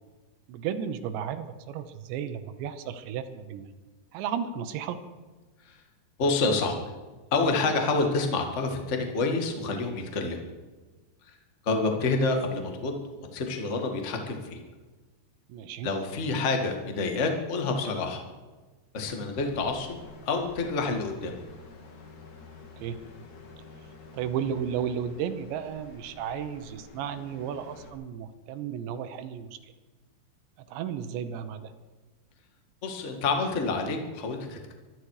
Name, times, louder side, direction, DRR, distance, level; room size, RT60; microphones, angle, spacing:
voice 1, 0.5-3.7 4.1-5.0 15.5-15.9 22.8-23.0 24.1-29.5 30.7-31.7, right 8 dB, 85° right, 9 dB, 3.3 m, -33 dB
voice 2, 6.2-6.8 7.3-10.4 11.2-11.4 11.6-14.6 15.8-18.2 18.9-21.3 32.8-34.7, left 3 dB, 65° left, 3 dB, 0.7 m, -28 dB
sound 1, 19.3-27.9, left 3 dB, 50° left, 3.4 m, -49 dB
24.0 x 12.0 x 4.9 m, 1.3 s
omnidirectional pair, 5.0 m